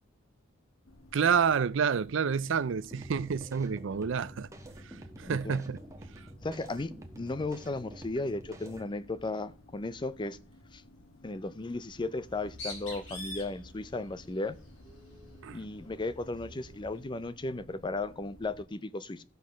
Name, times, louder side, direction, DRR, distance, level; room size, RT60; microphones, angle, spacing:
sound 1, 0.9-18.7, left 1 dB, 90° left, 1.4 m, -57 dB
voice 1, 1.1-4.5 4.8-5.8 15.4-15.6, right 6 dB, 60° right, 0.4 m, -29 dB
sound 2, 2.9-8.9, right 1 dB, 15° right, 1.2 m, -48 dB
voice 2, 5.2-5.6 6.4-6.9 7.2-10.4 10.7-10.8 11.2-14.6 15.5-19.2, left 2 dB, 20° left, 0.5 m, -35 dB
Bird, 12.2-17.0, left 1 dB, 65° left, 5.6 m, -46 dB
14.5 x 5.8 x 6.3 m
head